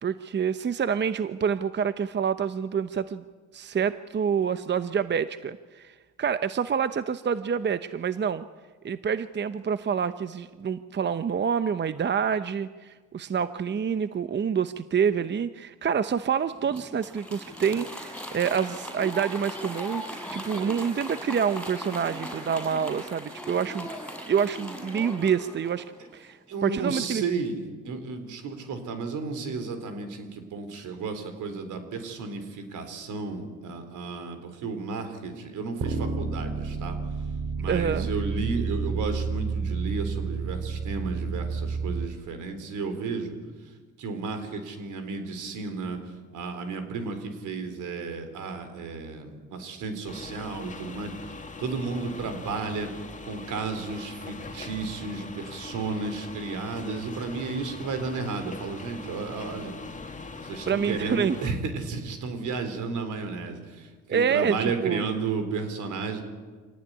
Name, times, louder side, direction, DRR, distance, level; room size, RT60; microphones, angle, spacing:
voice 1, 0.0-3.2 3.5-8.4 8.8-20.0 20.3-23.9 24.3-25.8 26.1-27.2 37.7-38.1 60.7-61.4 64.1-65.1, right 7 dB, 35° right, 12 dB, 0.8 m, -27 dB
Applause, 16.5-26.0, equal, 5° left, 5.7 m, -38 dB
voice 2, 26.5-37.0 37.6-43.4 43.6-52.9 53.2-59.8 60.4-66.2, right 4 dB, 80° right, 8 dB, 4.2 m, -33 dB
sound 1, 35.8-42.1, right 5 dB, 55° right, 2.3 m, -30 dB
sound 2, 50.1-61.5, left 3 dB, 25° left, 2.2 m, -41 dB
25.5 x 18.0 x 9.8 m, 1.4 s
cardioid pair, 90°, 30 cm